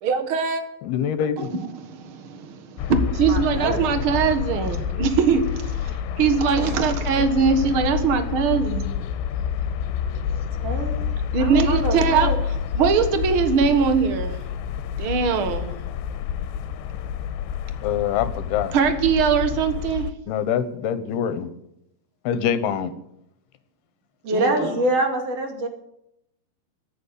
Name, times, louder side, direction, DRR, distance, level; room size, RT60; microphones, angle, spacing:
voice 1, 0.0-0.6 1.4-1.5 1.8-5.9 6.2-8.9 11.3-12.3 12.7-14.4 15.0-15.8 18.7-20.1 24.3-24.7, right 6 dB, 80° right, 8 dB, 1.1 m, -22 dB
voice 2, 0.8-1.6 10.6-10.7 17.8-18.8 20.3-21.5 22.2-22.9, left 8 dB, 75° left, 12 dB, 3.0 m, -25 dB
sound 1, 2.8-20.1, left 8 dB, 90° left, 3.1 m, -28 dB
voice 3, 3.3-4.0 6.6-6.7 10.6-11.0 11.4-12.4 24.2-25.7, right 1 dB, 40° right, 3 dB, 3.3 m, -25 dB
14.0 x 9.8 x 9.9 m, 0.80 s
omnidirectional pair, 4.9 m